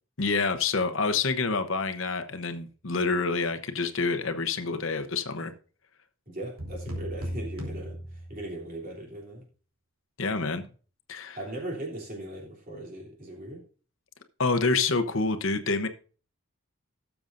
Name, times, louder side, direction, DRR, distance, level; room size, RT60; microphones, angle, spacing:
voice 1, 0.2-5.5 10.2-10.6 11.1-11.4 14.4-15.9, left 4 dB, 60° left, 0.9 m, -27 dB
voice 2, 6.3-9.5 11.4-13.6, right 1 dB, 40° right, 3.2 m, -39 dB
sound 1, 6.6-8.8, equal, 70° right, 3.1 m, -37 dB
18.0 x 7.1 x 2.6 m
head